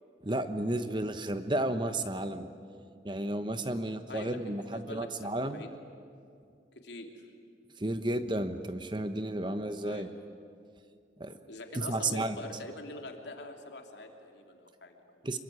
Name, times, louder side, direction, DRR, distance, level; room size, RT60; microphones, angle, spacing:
voice 1, 0.2-2.5 3.0-5.6 7.8-10.1 11.2-11.4 11.7-12.4 15.2-15.4, right 1 dB, 25° right, 9 dB, 1.1 m, -32 dB
voice 2, 4.1-5.1 5.3-5.7 6.8-7.2 9.8-10.1 11.5-15.3, left 2 dB, 85° left, 3 dB, 3.0 m, -44 dB
26.0 x 22.5 x 9.4 m, 2.4 s
head